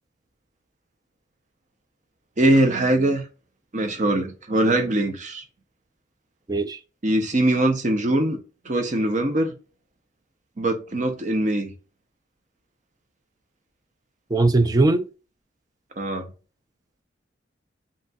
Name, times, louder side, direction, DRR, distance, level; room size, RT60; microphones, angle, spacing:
voice 1, 2.4-3.2 3.7-5.4 7.0-8.4 8.6-9.5 10.6-11.7 16.0-16.3, right 1 dB, 40° right, 0.7 m, -22 dB
voice 2, 6.5-6.8 14.3-15.1, right 2 dB, 20° right, 0.3 m, -19 dB
5.3 x 3.0 x 2.3 m
head